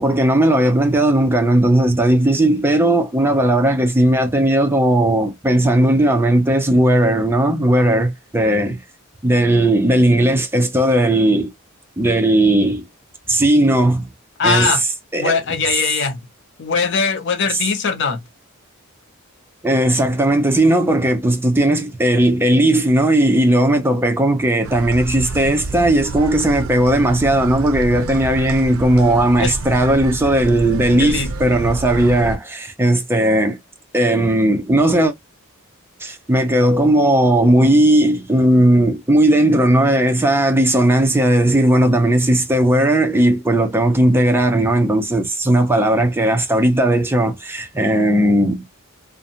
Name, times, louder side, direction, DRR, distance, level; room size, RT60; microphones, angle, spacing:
voice 1, 0.0-8.8 9.2-11.5 12.0-12.9 13.3-14.1 14.4-15.4 17.5-17.6 19.6-33.6 33.9-35.1 36.0-48.7, right 1 dB, 10° right, 0.4 m, -16 dB
voice 2, 14.4-14.8 15.2-16.2 16.6-18.2 29.4-29.5 31.0-31.3, left 5 dB, 55° left, 0.6 m, -20 dB
sound 1, 24.6-32.4, right 3 dB, 70° right, 0.5 m, -28 dB
2.5 x 2.1 x 2.6 m
head